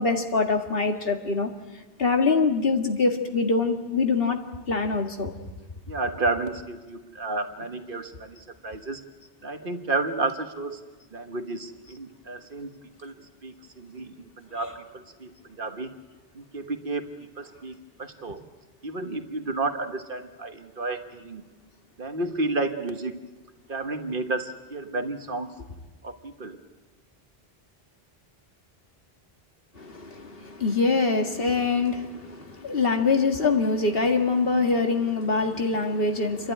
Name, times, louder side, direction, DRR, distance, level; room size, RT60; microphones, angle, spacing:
voice 1, 0.0-1.5 2.0-4.4 4.7-5.3 14.5-14.8 29.8-36.5, left 4 dB, 65° left, 4 dB, 2.0 m, -24 dB
voice 2, 5.9-9.0 9.4-10.8 11.1-12.7 13.0-13.1 13.4-15.9 16.3-18.4 18.8-21.4 22.0-23.2 23.7-25.5 26.0-26.6, right 3 dB, 60° right, 7 dB, 1.5 m, -31 dB
28.5 x 11.5 x 10.0 m, 1.3 s
omnidirectional pair, 1.0 m